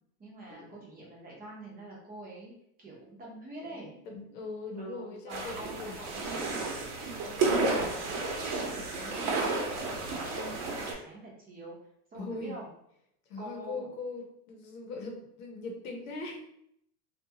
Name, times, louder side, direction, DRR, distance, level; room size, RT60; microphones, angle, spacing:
voice 1, 0.2-2.5 2.8-3.9 4.8-6.7 7.1-11.7 12.1-12.7 13.4-13.9, right 1 dB, 20° right, -4 dB, 0.7 m, -46 dB
voice 2, 3.6-6.2 12.1-12.6 13.3-16.5, left 3 dB, 80° left, 1 dB, 0.9 m, -40 dB
sound 1, 5.3-10.9, right 3 dB, 60° right, 0.9 m, -32 dB
2.6 x 2.3 x 2.7 m, 0.73 s
supercardioid pair, 140°, 46 cm